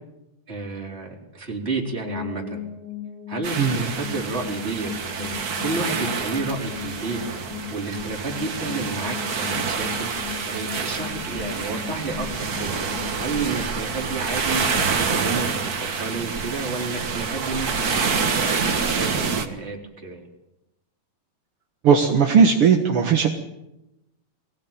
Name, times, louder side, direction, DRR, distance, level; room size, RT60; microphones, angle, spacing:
voice 1, 0.5-2.6 3.3-4.9 5.2-7.4 7.7-10.1 10.4-12.8 13.1-20.3, right 3 dB, 15° right, -1 dB, 4.0 m, -31 dB
sound 1, 2.0-14.9, left 9 dB, 50° left, 7.7 m, -38 dB
sound 2, 3.4-19.4, right 5 dB, 85° right, 0.8 m, -27 dB
voice 2, 21.8-23.3, right 6 dB, 55° right, 2 dB, 1.6 m, -17 dB
22.5 x 17.5 x 9.1 m, 0.92 s
omnidirectional pair, 4.4 m